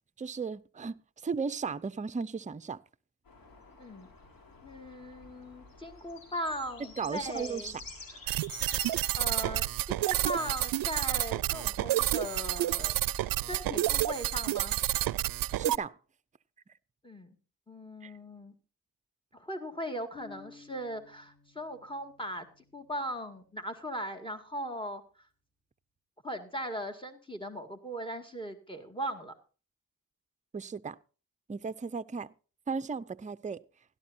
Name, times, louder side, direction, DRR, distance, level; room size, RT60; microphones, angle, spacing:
voice 1, 0.2-1.0 1.2-2.8 7.0-7.8 8.1-8.4 15.5-16.0 18.0-18.1 30.5-31.0 31.5-32.3 32.7-33.6, right 5 dB, 20° right, 0.5 m, -35 dB
sound 1, 3.3-9.1, left 3 dB, 85° left, 4.2 m, -48 dB
voice 2, 4.6-7.7 8.8-14.8 17.0-17.3 17.7-18.5 19.3-22.5 22.7-25.0 26.2-29.3, equal, 15° left, 2.1 m, -39 dB
sound 2, 8.3-15.8, right 14 dB, 80° right, 0.5 m, -30 dB
sound 3, 20.1-23.9, left 3 dB, 30° left, 5.3 m, -56 dB
17.0 x 12.0 x 2.7 m
cardioid pair, 70°, 34 cm